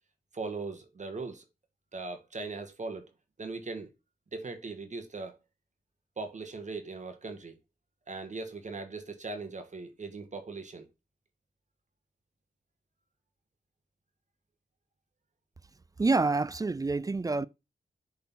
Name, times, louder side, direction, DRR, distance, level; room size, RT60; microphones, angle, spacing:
voice 1, 0.3-1.5 1.9-3.1 3.4-3.9 4.3-5.4 6.2-7.6 8.1-10.9, right 3 dB, 45° right, 1.4 m, -39 dB
voice 2, 16.0-17.5, right 3 dB, 20° right, 0.4 m, -27 dB
6.9 x 3.9 x 4.2 m
supercardioid pair, 45°, 17 cm